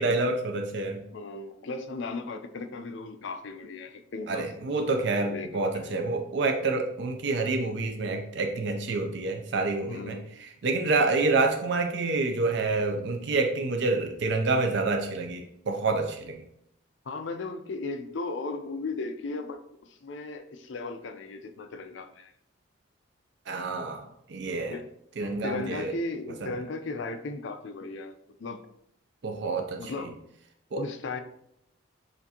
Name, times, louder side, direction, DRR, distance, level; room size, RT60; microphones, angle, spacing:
voice 1, 0.0-1.0 4.3-16.4 23.5-24.0 24.3-24.7 25.2-25.9 26.4-26.5 29.2-29.9 30.7-30.8, right 3 dB, 55° right, 4 dB, 0.4 m, -28 dB
voice 2, 1.1-4.5 4.9-6.1 9.9-10.3 17.1-22.3 24.7-24.9 25.2-28.1 28.4-28.6 29.8-30.2 30.8-31.2, left 3 dB, 65° left, 7 dB, 0.4 m, -36 dB
6.9 x 2.6 x 2.7 m, 0.75 s
head